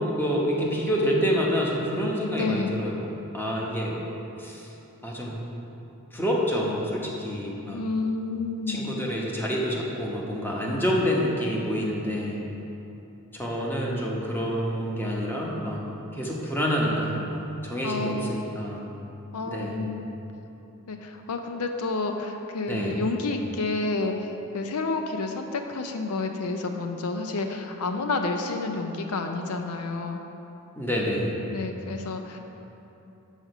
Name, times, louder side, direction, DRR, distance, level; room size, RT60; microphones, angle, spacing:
voice 1, 0.0-3.1 3.3-4.0 4.4-4.7 5.0-5.3 6.1-7.8 8.7-12.4 13.3-15.8 16.1-18.8 19.4-19.8 22.7-23.0 30.8-31.4, equal, 10° left, -3 dB, 0.9 m, -27 dB
voice 2, 2.4-2.8 7.7-9.0 17.8-18.4 19.3-20.1 20.9-30.2 31.5-32.4, left 3 dB, 75° left, 5 dB, 0.5 m, -30 dB
6.4 x 4.9 x 6.5 m, 3.0 s
head